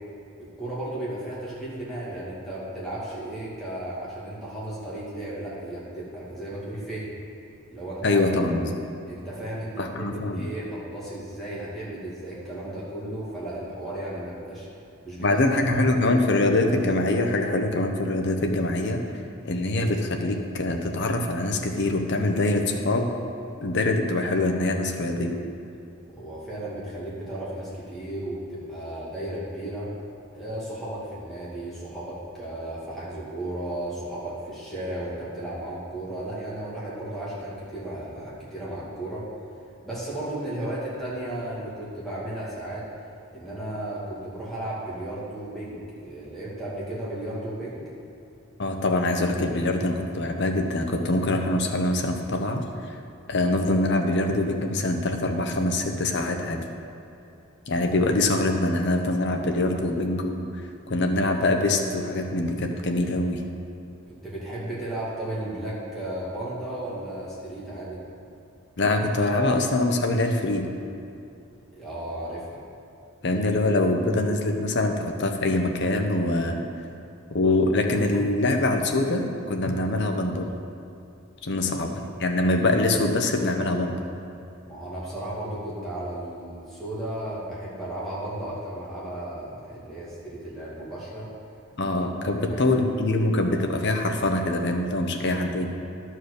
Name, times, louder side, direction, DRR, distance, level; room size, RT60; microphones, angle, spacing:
voice 1, 0.4-7.1 7.7-8.2 9.0-14.7 15.0-15.4 15.8-15.9 26.1-29.9 30.3-39.2 39.8-42.9 43.3-47.8 64.0-68.0 71.7-72.6 84.6-91.3 92.2-92.8, right 1 dB, ahead, -9 dB, 2.3 m, -34 dB
voice 2, 8.0-8.7 9.8-10.5 15.2-19.0 19.4-23.1 23.6-25.4 48.6-53.0 53.3-56.6 57.7-60.5 60.9-63.4 68.8-70.7 73.2-76.6 77.3-80.5 81.4-84.0 91.8-95.7, left 2 dB, 50° left, 3 dB, 0.8 m, -24 dB
11.0 x 4.7 x 6.5 m, 2.7 s
head